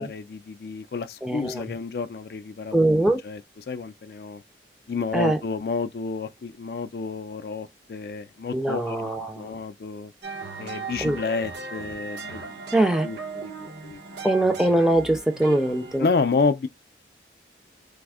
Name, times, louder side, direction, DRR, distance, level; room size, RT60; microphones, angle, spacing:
voice 1, 0.0-3.0 3.2-3.4 3.7-4.4 4.9-10.1 10.6-12.6 13.0-14.0 16.0-16.7, left 4 dB, 60° left, 0.3 m, -30 dB
voice 2, 1.2-1.8 2.7-3.2 5.1-5.4 8.5-9.5 11.0-11.2 12.7-13.1 14.2-16.1, right 1 dB, 5° right, 0.5 m, -22 dB
sound 1, 10.2-16.0, right 4 dB, 75° right, 0.8 m, -37 dB
3.3 x 2.0 x 3.5 m
head